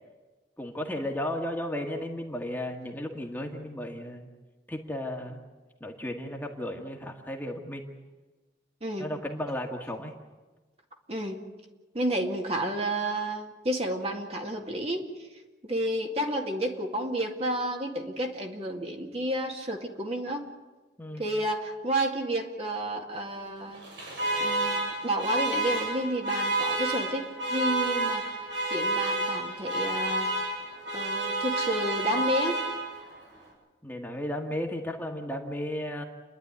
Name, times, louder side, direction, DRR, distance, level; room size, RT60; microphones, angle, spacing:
voice 1, 0.6-4.3 4.7-5.4 5.8-7.9 9.0-10.1 21.0-21.3 33.8-36.0, left 1 dB, 10° left, 1 dB, 1.8 m, -34 dB
voice 2, 11.1-11.4 11.9-15.4 15.7-20.4 21.2-23.8 24.4-28.5 28.7-30.3 30.9-32.6, right 1 dB, 35° right, 2 dB, 2.2 m, -31 dB
Alarm, 23.7-33.2, right 2 dB, 85° right, 7.9 m, -30 dB
29.5 x 11.0 x 9.7 m, 1.2 s
head